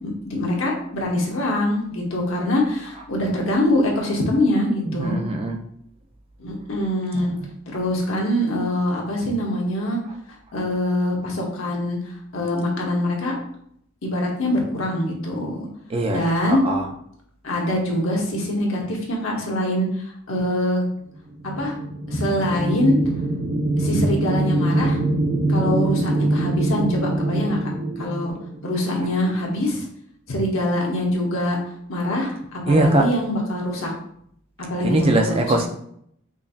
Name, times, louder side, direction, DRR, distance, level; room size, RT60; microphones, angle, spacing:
voice 1, 0.0-5.2 6.4-7.3 7.7-10.0 10.3-12.0 12.3-13.3 14.0-15.7 16.1-16.6 17.4-19.9 20.3-20.8 21.6-21.7 22.1-23.0 23.8-25.0 25.5-27.6 28.0-28.3 28.6-29.9 30.3-31.6 31.9-33.9 34.7-35.5, left 1 dB, 65° left, -1 dB, 0.9 m, -24 dB
voice 2, 4.9-5.6 7.1-7.5 15.9-16.9 32.7-33.0 34.8-35.7, right 2 dB, 25° right, 3 dB, 0.4 m, -21 dB
sound 1, 21.3-29.0, right 1 dB, 70° right, 0.8 m, -23 dB
5.1 x 2.6 x 2.4 m, 0.70 s
head